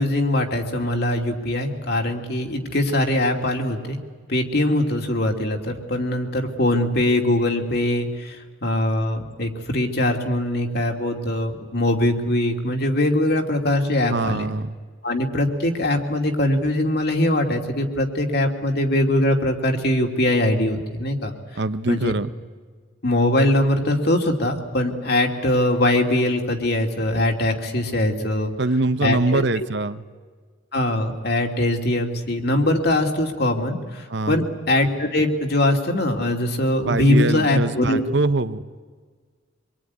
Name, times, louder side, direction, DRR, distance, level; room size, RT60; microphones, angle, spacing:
voice 1, 0.0-4.0 4.3-14.5 15.0-21.3 21.9-22.1 23.0-28.5 29.0-29.5 30.7-38.0, left 1 dB, 55° left, 3 dB, 2.9 m, -22 dB
voice 2, 14.1-14.7 21.5-22.3 28.6-30.0 34.1-34.4 36.8-38.6, right 2 dB, 60° right, 12 dB, 0.9 m, -23 dB
25.0 x 23.0 x 9.6 m, 1.5 s
head